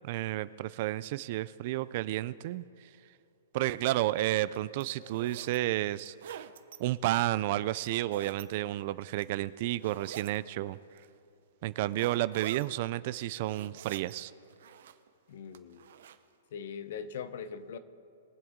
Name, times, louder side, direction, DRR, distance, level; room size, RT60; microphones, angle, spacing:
voice 1, 0.0-2.9 3.5-6.5 6.8-10.8 11.6-14.3, right 15 dB, 45° right, 17 dB, 0.4 m, -31 dB
sound 1, 3.7-3.8 4.4-5.6 5.9-6.8 7.7-8.4 9.0-9.4 9.8-10.4 11.0-11.1 11.9-12.7 13.2-14.2 14.5-15.1 15.5-16.2, right 9 dB, 65° right, 0.7 m, -47 dB
voice 2, 15.3-15.8 16.5-17.8, left 7 dB, 60° left, 13 dB, 0.8 m, -41 dB
22.5 x 7.8 x 3.8 m, 2.7 s
hypercardioid pair, 150°, 0 cm